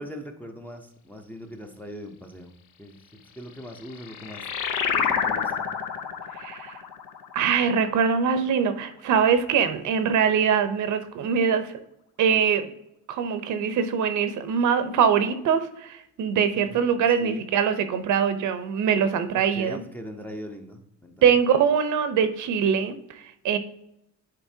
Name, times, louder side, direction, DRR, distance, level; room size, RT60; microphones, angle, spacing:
voice 1, 0.0-2.5 2.8-4.5 4.9-5.7 16.5-16.9 17.2-17.5 19.3-21.2, equal, 5° left, 2 dB, 0.5 m, -40 dB
sound 1, 3.5-8.6, left 7 dB, 90° left, 0.8 m, -29 dB
voice 2, 6.3-6.8 7.3-11.7 12.2-12.7 13.1-19.8 21.2-23.6, right 7 dB, 65° right, 11 dB, 0.7 m, -23 dB
10.5 x 4.2 x 2.7 m, 0.81 s
cardioid pair, 165°, 32 cm